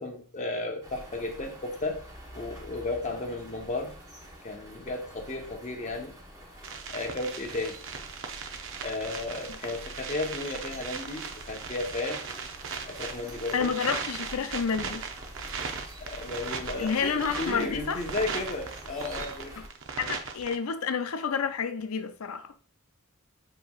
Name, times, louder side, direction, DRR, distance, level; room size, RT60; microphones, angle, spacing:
voice 1, 0.0-2.0 2.3-4.0 4.4-6.1 6.9-7.8 8.8-12.2 12.8-13.8 16.0-19.6, left 2 dB, 35° left, 0.9 m, -34 dB
sound 1, 0.8-19.7, equal, 15° right, 1.1 m, -47 dB
sound 2, 6.6-20.6, right 5 dB, 65° right, 0.6 m, -38 dB
voice 2, 13.5-15.0 16.8-18.0 19.6-19.7 20.0-22.5, left 6 dB, 85° left, 0.5 m, -29 dB
7.6 x 3.0 x 2.4 m
head